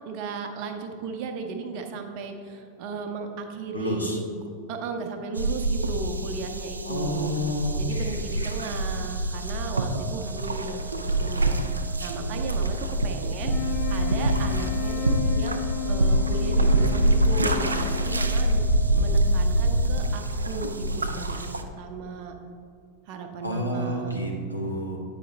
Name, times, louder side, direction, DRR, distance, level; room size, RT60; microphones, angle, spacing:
voice 1, 0.0-4.2 4.7-7.3 7.8-11.6 12.0-15.6 15.9-18.6 18.9-22.3 23.1-24.2, right 4 dB, 45° right, 5 dB, 0.7 m, -35 dB
voice 2, 3.7-4.2 6.8-8.5 23.4-25.0, left 1 dB, 90° left, -1 dB, 0.9 m, -30 dB
sound 1, 5.4-21.6, right 1 dB, 80° right, 0.4 m, -25 dB
sound 2, 9.9-19.9, right 5 dB, 10° left, 0.6 m, -46 dB
sound 3, 13.4-18.8, left 13 dB, 45° left, 0.3 m, -34 dB
8.4 x 4.9 x 3.3 m, 2.4 s
figure-of-eight pair, 90°, 0 cm